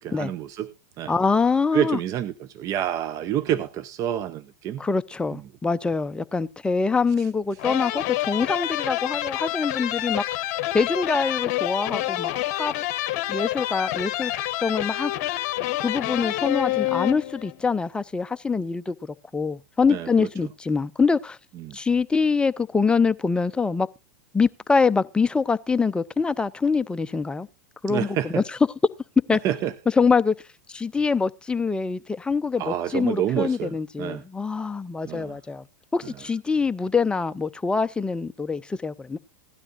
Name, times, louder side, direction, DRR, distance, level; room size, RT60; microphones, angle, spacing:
voice 1, 0.0-1.2 1.7-4.8 5.3-5.4 19.9-20.3 21.6-21.8 27.9-28.4 29.4-29.7 32.6-34.2 35.0-35.4 36.0-36.1, right 11 dB, 35° right, 0.7 m, -28 dB
voice 2, 1.1-2.0 4.8-10.2 10.7-12.7 13.3-14.3 14.6-15.1 15.8-18.9 19.3-21.4 21.7-23.9 24.3-27.5 27.8-28.4 29.3-29.4 30.0-30.3 30.7-35.6 35.9-39.2, left 4 dB, 10° left, 0.5 m, -24 dB
sound 1, 7.6-17.6, left 15 dB, 50° left, 0.9 m, -28 dB
17.0 x 12.5 x 2.5 m
hypercardioid pair, 100°, 9 cm